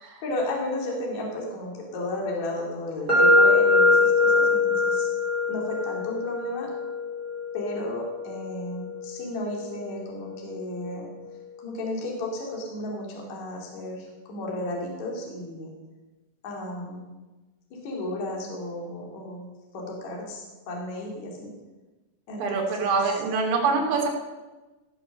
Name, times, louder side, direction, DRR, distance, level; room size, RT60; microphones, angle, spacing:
voice 1, 0.2-5.1 5.5-6.7 7.5-11.1 11.6-15.7 16.4-17.0 17.8-19.5 19.7-21.5 22.3-23.1, left 1 dB, 45° left, -2 dB, 3.4 m, -33 dB
sound 1, 3.1-10.9, left 2 dB, 10° right, 2.7 m, -24 dB
voice 2, 22.4-24.1, right 4 dB, 85° right, 0 dB, 4.4 m, -24 dB
16.0 x 6.7 x 6.5 m, 1.2 s
omnidirectional pair, 5.2 m